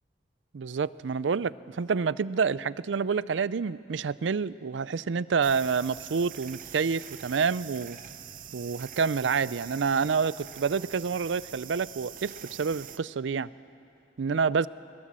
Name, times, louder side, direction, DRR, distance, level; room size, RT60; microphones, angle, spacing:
voice 1, 0.5-8.0 8.5-13.5 14.2-14.7, right 5 dB, 85° right, 18 dB, 0.5 m, -28 dB
sound 1, 5.4-13.0, right 10 dB, 45° right, 0.7 m, -44 dB
22.0 x 21.0 x 7.5 m, 2.6 s
head